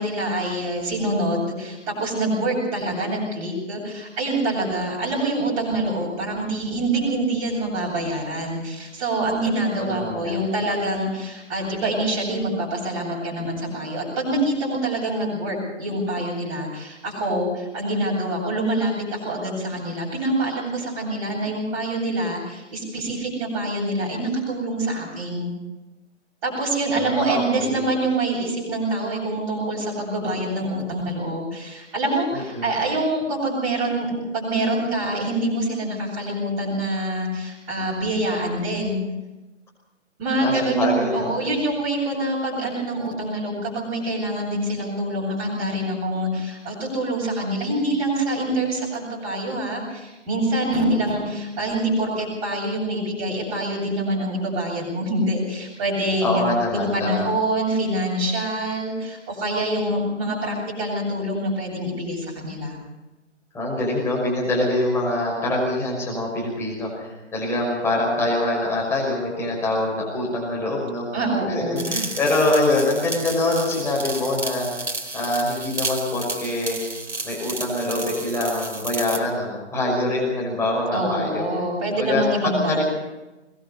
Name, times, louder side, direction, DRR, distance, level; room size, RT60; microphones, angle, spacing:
voice 1, 0.0-25.5 26.4-39.0 40.2-56.4 56.7-62.8 71.1-71.9 80.9-82.8, right 1 dB, 25° right, -8 dB, 7.5 m, -25 dB
voice 2, 9.8-10.4 27.0-27.9 32.3-32.7 40.4-41.3 56.2-57.3 63.5-71.1 71.5-74.7 75.1-76.8 77.2-81.5 81.9-82.2 82.6-82.8, left 2 dB, 5° left, -3 dB, 5.9 m, -24 dB
sound 1, 71.8-79.3, right 2 dB, 75° right, 4.8 m, -32 dB
22.5 x 20.0 x 5.7 m, 1.1 s
figure-of-eight pair, 140°, 36 cm